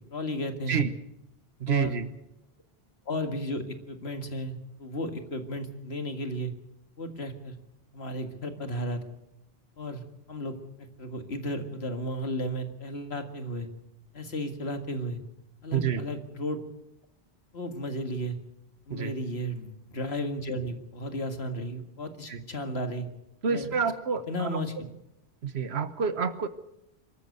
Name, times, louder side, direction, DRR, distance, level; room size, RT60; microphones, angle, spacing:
voice 1, 0.1-0.8 1.7-2.0 3.1-6.5 7.0-7.6 7.9-9.0 9.8-10.0 10.3-13.7 14.1-15.2 15.6-16.6 17.5-18.4 18.9-23.1 23.5-23.7 24.3-24.7, equal, 80° left, 7 dB, 2.2 m, -34 dB
voice 2, 1.6-2.1 15.7-16.1 18.9-19.1 22.3-22.4 23.4-24.8 25.4-26.5, right 6 dB, 80° right, 12 dB, 1.4 m, -28 dB
23.5 x 13.5 x 8.0 m, 0.86 s
omnidirectional pair, 1.1 m